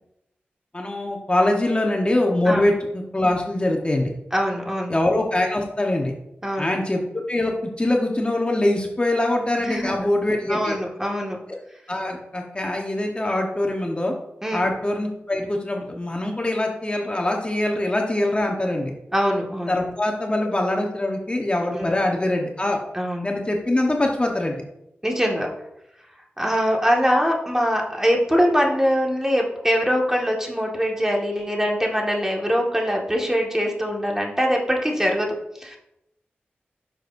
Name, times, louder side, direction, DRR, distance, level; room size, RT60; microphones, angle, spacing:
voice 1, 0.7-4.1 4.9-6.1 6.6-7.0 7.3-10.8 11.9-14.1 14.5-18.9 19.7-22.8 23.2-24.6, left 1 dB, 25° left, 1 dB, 1.1 m, -23 dB
voice 2, 4.3-5.0 6.4-6.7 9.6-10.0 10.5-11.4 14.4-14.7 19.1-19.8 21.7-21.9 22.9-23.3 25.0-25.5 26.4-35.8, equal, 10° right, 0 dB, 1.8 m, -23 dB
10.5 x 6.2 x 2.6 m, 0.85 s
cardioid pair, 60°, 4 cm